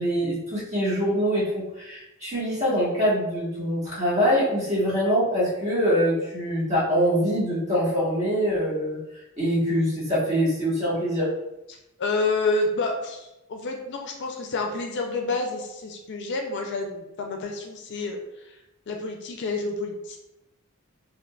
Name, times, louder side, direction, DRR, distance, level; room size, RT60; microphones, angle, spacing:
voice 1, 0.0-9.0 9.4-11.3, equal, 30° right, -8 dB, 1.3 m, -24 dB
voice 2, 11.7-18.6 18.9-20.2, left 3 dB, 55° left, 3 dB, 0.4 m, -29 dB
3.7 x 2.4 x 2.3 m, 0.91 s
head